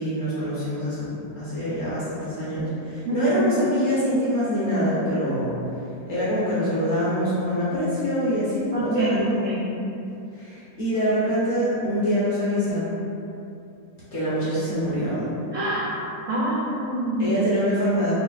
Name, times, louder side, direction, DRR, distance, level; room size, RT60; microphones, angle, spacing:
voice 1, 0.0-5.5 6.1-9.6 10.3-12.9 14.1-15.3 17.2-18.1, equal, 55° left, -10 dB, 0.8 m, -25 dB
voice 2, 8.7-9.7 15.5-16.0 16.3-17.4, right 1 dB, 90° right, -7 dB, 0.6 m, -25 dB
3.3 x 2.4 x 3.9 m, 2.7 s
omnidirectional pair, 2.0 m